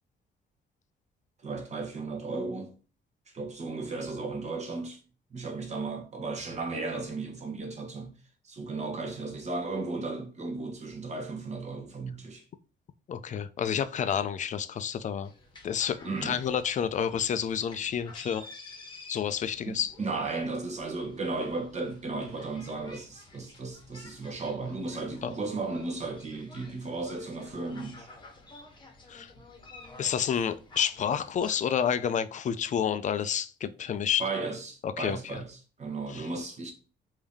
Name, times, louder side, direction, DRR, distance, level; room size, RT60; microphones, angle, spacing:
voice 1, 1.4-2.7 3.3-5.0 5.3-8.1 8.4-12.4 16.0-16.4 19.7-28.1 34.2-36.7, right 3 dB, 35° right, 0.9 m, -35 dB
voice 2, 13.1-15.3 15.6-18.5 19.1-19.9 25.2-25.3 29.1-29.3 30.0-34.2 34.8-35.4 36.1-36.3, left 8 dB, 40° left, 0.4 m, -29 dB
sound 1, 15.2-31.6, left 3 dB, 25° left, 0.9 m, -51 dB
3.4 x 2.7 x 3.4 m
cardioid pair, 120°, 19 cm